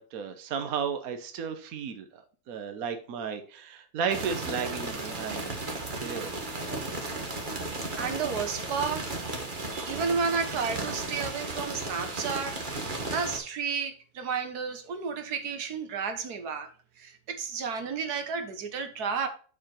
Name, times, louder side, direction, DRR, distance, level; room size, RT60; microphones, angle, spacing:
voice 1, 0.0-5.6 6.0-6.5, right 6 dB, 70° right, 1.3 m, -34 dB
sound 1, 4.1-13.4, right 2 dB, 35° right, 1.5 m, -35 dB
voice 2, 8.0-9.2 9.7-16.7 17.0-19.3, right 5 dB, 85° right, 1.6 m, -32 dB
7.3 x 4.9 x 4.4 m
omnidirectional pair, 1.6 m